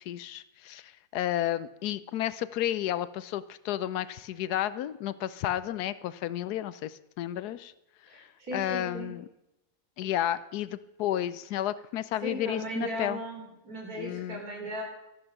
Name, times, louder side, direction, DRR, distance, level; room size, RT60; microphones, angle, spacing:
voice 1, 0.0-7.7 8.2-9.2 10.0-13.2 14.0-14.4, left 12 dB, 80° left, 16 dB, 1.2 m, -32 dB
voice 2, 8.1-9.2 12.2-14.8, equal, 65° right, 0 dB, 4.1 m, -37 dB
13.0 x 11.5 x 5.9 m, 0.89 s
omnidirectional pair, 1.7 m